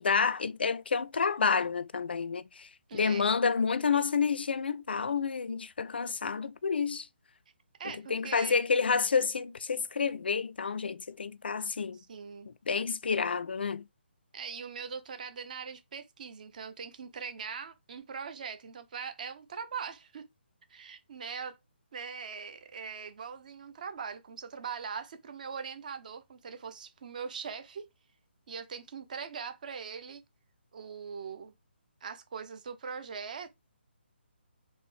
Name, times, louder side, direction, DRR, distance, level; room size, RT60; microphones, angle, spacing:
voice 1, 0.0-7.1 8.1-12.0 12.5-13.8, left 5 dB, 60° left, 0.4 m, -29 dB
voice 2, 2.9-3.3 7.8-8.6 11.9-12.5 14.3-20.3 20.7-21.6 21.9-27.9 28.5-30.2 30.7-31.5 32.0-33.5, right 6 dB, 45° right, 0.9 m, -41 dB
4.2 x 3.0 x 3.4 m
figure-of-eight pair, 140°, 6 cm